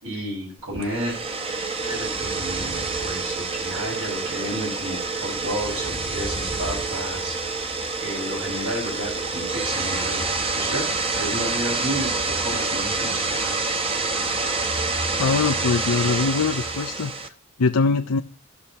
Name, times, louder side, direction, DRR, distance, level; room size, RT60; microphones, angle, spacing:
voice 1, 0.0-1.2 1.8-7.3 8.0-10.2 10.5-10.8 11.1-13.5, right 1 dB, 80° right, -3 dB, 5.6 m, -31 dB
sound 1, 0.7-17.3, right 3 dB, 25° right, 0.9 m, -27 dB
voice 2, 15.2-17.1 17.6-18.2, left 4 dB, 85° left, 4 dB, 0.6 m, -22 dB
17.0 x 6.6 x 2.9 m, 0.34 s
head